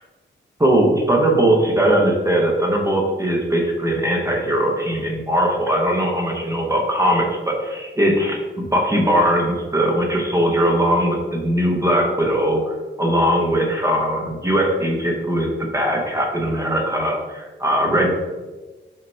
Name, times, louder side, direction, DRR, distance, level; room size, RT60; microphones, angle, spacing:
voice 1, 0.6-18.1, right 1 dB, 15° right, -1 dB, 0.5 m, -20 dB
5.2 x 2.1 x 4.1 m, 1.3 s
wide cardioid pair, 140°, 20 cm